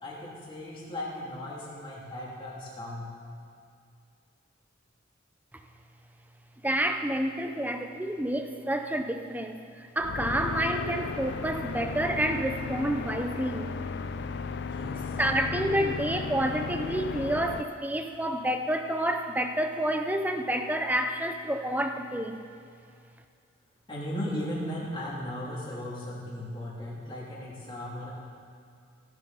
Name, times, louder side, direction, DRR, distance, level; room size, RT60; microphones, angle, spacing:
voice 1, 0.0-3.1 14.6-15.2 23.9-28.1, left 1 dB, 25° left, -6 dB, 2.3 m, -37 dB
voice 2, 6.6-13.7 15.2-22.4, right 1 dB, 10° right, 6 dB, 0.5 m, -29 dB
sound 1, 10.0-17.6, left 5 dB, 55° left, 0.4 m, -35 dB
16.0 x 7.4 x 4.0 m, 2.4 s
head